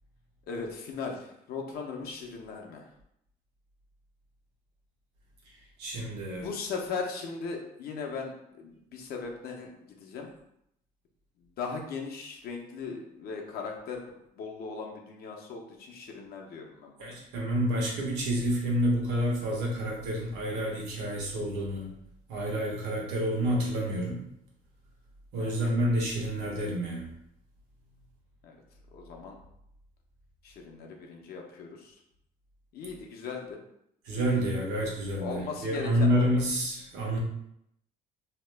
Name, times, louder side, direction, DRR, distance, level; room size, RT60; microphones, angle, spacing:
voice 1, 0.5-2.8 6.4-10.3 11.6-14.0 14.4-17.1 25.4-25.6 28.4-28.6 28.9-29.4 30.4-32.0 32.7-33.6 35.2-36.3, left 5 dB, 65° left, 1 dB, 0.6 m, -38 dB
voice 2, 5.8-6.5 17.0-21.9 22.3-24.2 25.3-27.1 34.0-37.2, equal, 85° right, -2 dB, 1.1 m, -29 dB
2.8 x 2.1 x 3.3 m, 0.76 s
cardioid pair, 110°, 17 cm